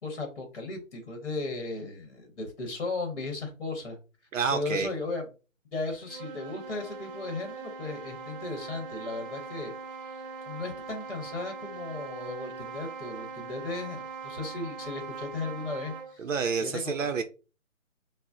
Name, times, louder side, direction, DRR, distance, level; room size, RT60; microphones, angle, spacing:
voice 1, 0.0-4.0 4.5-5.3 5.7-9.7 10.1-16.2 16.6-17.2, left 3 dB, 50° left, 0.9 m, -36 dB
voice 2, 4.3-4.9 16.2-17.2, right 5 dB, 70° right, 0.5 m, -28 dB
sound 1, 5.9-16.2, right 4 dB, 45° right, 0.8 m, -41 dB
3.8 x 2.0 x 2.4 m
hypercardioid pair, 170°, 40 cm